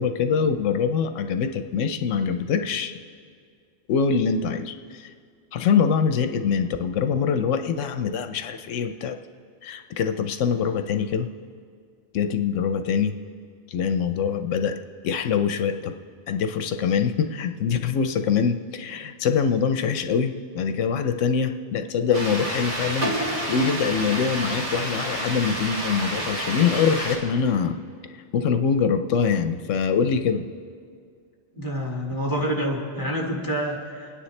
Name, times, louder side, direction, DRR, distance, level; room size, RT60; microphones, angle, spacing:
voice 1, 0.0-2.9 3.9-5.1 5.5-9.2 9.6-11.3 12.1-13.1 13.7-14.8 15.0-15.9 16.3-23.1 23.5-27.7 28.3-30.4, left 6 dB, 85° left, 7 dB, 1.0 m, -24 dB
sound 1, 22.1-27.2, right 1 dB, 85° right, 3.1 m, -29 dB
voice 2, 31.5-34.2, equal, 15° left, -2 dB, 1.9 m, -28 dB
28.5 x 9.9 x 3.2 m, 2.2 s
omnidirectional pair, 1.3 m